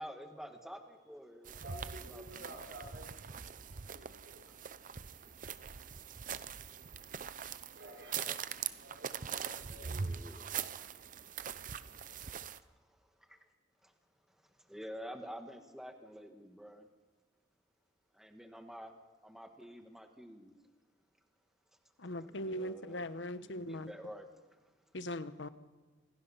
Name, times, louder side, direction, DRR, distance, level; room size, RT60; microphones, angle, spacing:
voice 1, 0.0-1.7 2.0-2.5 3.3-3.7 8.2-8.4 9.4-11.3 11.6-13.4 13.8-13.9 14.3-16.9 18.1-18.9 19.2-20.5 22.2-23.0 23.4-24.6, equal, 5° right, 5 dB, 1.5 m, -50 dB
sound 1, 1.5-12.6, right 7 dB, 45° right, 0.7 m, -42 dB
voice 2, 1.6-3.3 3.9-4.5 6.8-8.5 8.8-10.3, right 1 dB, 75° right, 1 dB, 5.1 m, -53 dB
voice 3, 22.0-23.9 24.9-25.5, left 1 dB, 80° left, 12 dB, 1.1 m, -40 dB
26.5 x 18.0 x 5.7 m, 1.3 s
head